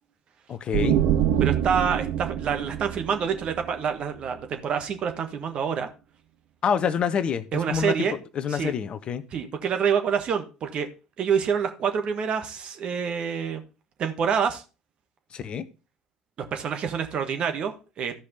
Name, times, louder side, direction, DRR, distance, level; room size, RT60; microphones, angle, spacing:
voice 1, 0.5-1.0 6.6-8.1 8.3-9.2 15.3-15.7, left 7 dB, 40° left, 0.8 m, -27 dB
sound 1, 0.7-4.3, right 10 dB, 60° right, 0.8 m, -25 dB
voice 2, 1.4-5.9 7.5-8.2 8.5-8.7 9.3-10.9 11.2-13.6 14.0-14.6 16.5-18.2, right 7 dB, 40° right, 1.5 m, -27 dB
14.5 x 5.2 x 4.0 m
figure-of-eight pair, 60°, 3 cm